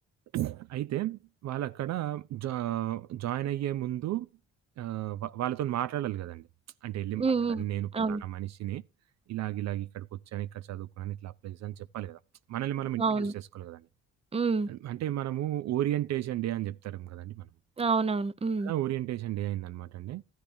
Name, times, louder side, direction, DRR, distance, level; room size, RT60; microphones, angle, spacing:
voice 1, 0.3-4.3 4.8-6.5 6.8-7.2 7.5-8.8 9.3-12.2 12.5-13.9 14.7-17.5 18.6-20.2, right 13 dB, 60° right, 0.4 m, -33 dB
voice 2, 7.2-7.6 7.9-8.2 13.0-13.3 14.3-14.7 17.8-18.7, right 4 dB, 20° right, 0.6 m, -27 dB
13.5 x 10.5 x 2.6 m
cardioid pair, 90°, 30 cm